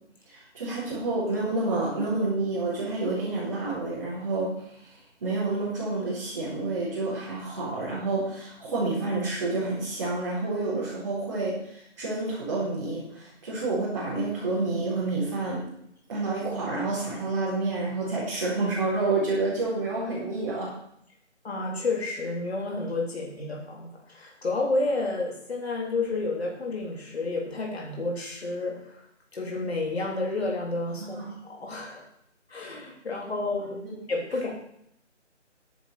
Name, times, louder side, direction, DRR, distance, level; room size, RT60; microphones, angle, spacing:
voice 1, 0.2-15.6 16.1-20.7 31.0-31.2 33.5-34.0, right 3 dB, 25° right, -10 dB, 4.4 m, -29 dB
voice 2, 21.4-29.0 29.3-32.0 32.5-33.8 34.1-34.5, left 3 dB, 60° left, -1 dB, 3.6 m, -30 dB
10.5 x 8.1 x 6.8 m, 0.71 s
figure-of-eight pair, 170°, 36 cm